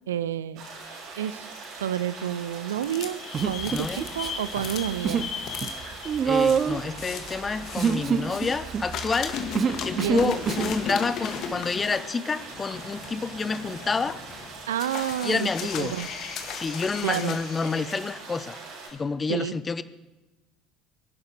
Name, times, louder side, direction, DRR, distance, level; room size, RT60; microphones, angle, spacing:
voice 1, 0.1-0.6 1.2-1.5 1.8-5.3 9.9-10.4 14.7-15.5 15.8-16.1 17.0-17.4 19.3-19.6, right 10 dB, 80° right, 17 dB, 0.5 m, -29 dB
sound 1, 0.5-18.9, right 3 dB, 60° right, 6.2 m, -42 dB
sound 2, 2.8-8.6 8.9-18.1, left 7 dB, 50° left, 1.8 m, -37 dB
Human voice, 3.3-4.3 4.6-5.3 5.6-10.8, right 7 dB, 40° right, 0.7 m, -26 dB
voice 2, 6.2-9.3 9.8-14.2 15.2-15.9 16.5-18.6 18.9-19.8, left 4 dB, 25° left, 15 dB, 1.0 m, -28 dB
25.0 x 11.5 x 4.7 m, 1.1 s
figure-of-eight pair, 65°, 0 cm